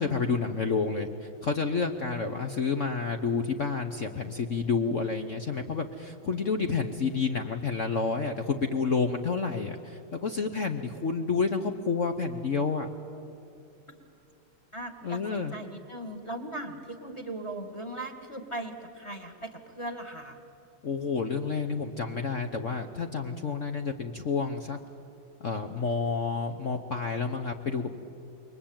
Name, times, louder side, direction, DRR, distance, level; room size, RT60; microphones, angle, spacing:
voice 1, 0.0-12.9 15.0-15.5 20.8-24.8 25.4-28.0, left 4 dB, 50° left, 6 dB, 1.0 m, -29 dB
voice 2, 14.7-20.4, right 1 dB, 15° left, 6 dB, 1.9 m, -38 dB
28.0 x 23.0 x 8.9 m, 2.7 s
omnidirectional pair, 2.3 m